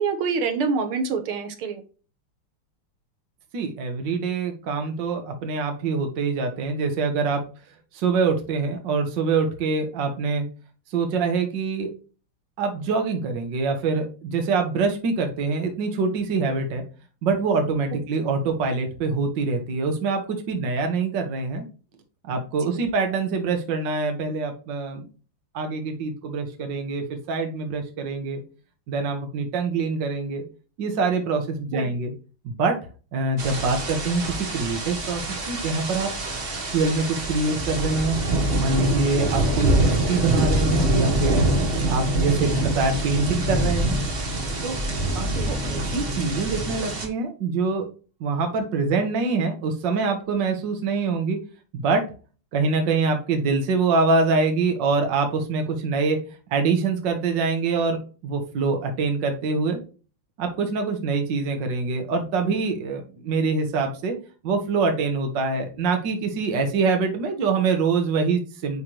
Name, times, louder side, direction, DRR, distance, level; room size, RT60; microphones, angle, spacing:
voice 1, 0.0-1.8 22.7-22.8 31.7-31.9 39.2-39.3 45.4-45.6, right 5 dB, 90° right, 6 dB, 2.0 m, -26 dB
voice 2, 3.5-7.4 7.9-10.5 10.9-11.9 12.6-16.8 17.2-21.6 22.3-25.0 25.5-28.4 28.9-30.4 30.8-32.1 32.4-32.8 33.1-36.1 36.5-44.0 44.6-44.8 45.1-47.9 48.2-51.4 51.7-52.1 52.5-56.2 56.5-59.8 60.4-64.2 64.4-68.8, right 4 dB, 60° right, 5 dB, 1.9 m, -25 dB
sound 1, 33.4-47.1, right 1 dB, 35° right, 1.2 m, -25 dB
9.9 x 3.6 x 2.9 m, 0.36 s
omnidirectional pair, 2.3 m